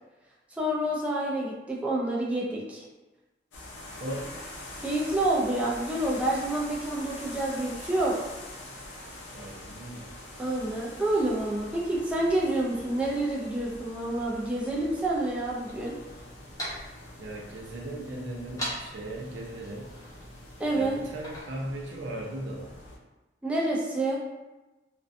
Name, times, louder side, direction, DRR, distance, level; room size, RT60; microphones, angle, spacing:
voice 1, 0.6-2.8 4.8-8.2 10.4-16.0 20.6-21.0 23.4-24.2, right 1 dB, 5° right, -4 dB, 0.3 m, -28 dB
sound 1, 3.5-23.0, left 1 dB, 80° left, 0.6 m, -45 dB
voice 2, 4.0-4.4 9.3-10.1 17.2-19.9 20.7-22.7, right 1 dB, 70° right, -2 dB, 0.5 m, -37 dB
sound 2, 15.5-21.4, equal, 20° left, 0.7 m, -42 dB
2.4 x 2.2 x 2.5 m, 1.1 s
head